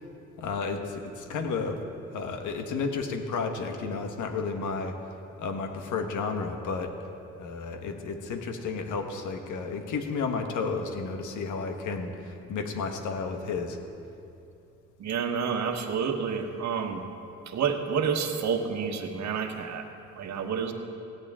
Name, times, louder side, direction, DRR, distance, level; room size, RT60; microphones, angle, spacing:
voice 1, 0.4-1.8 2.1-5.0 5.4-7.0 7.4-13.8, left 4 dB, 75° left, 5 dB, 1.5 m, -32 dB
voice 2, 15.0-17.0 17.5-19.9 20.2-20.7, right 6 dB, 65° right, 5 dB, 1.4 m, -29 dB
17.0 x 16.0 x 3.7 m, 2.6 s
cardioid pair, 90°, 30 cm